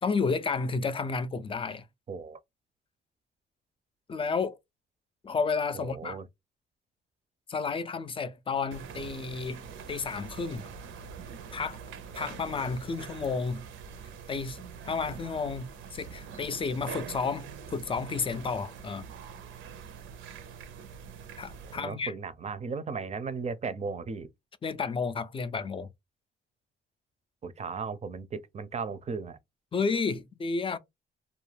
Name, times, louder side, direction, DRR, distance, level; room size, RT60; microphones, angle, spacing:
voice 1, 0.0-1.8 4.1-4.6 5.2-6.2 7.5-9.6 9.9-10.6 11.5-11.8 12.2-13.7 14.3-19.1 21.4-22.1 24.6-25.9 29.7-30.8, left 4 dB, 25° left, 0.4 m, -31 dB
voice 2, 2.1-2.4 5.7-6.3 21.7-24.3 27.4-29.4, right 5 dB, 35° right, 0.5 m, -36 dB
sound 1, 8.7-21.8, right 7 dB, 80° right, 0.6 m, -44 dB
2.4 x 2.2 x 3.2 m
cardioid pair, 90°, 20 cm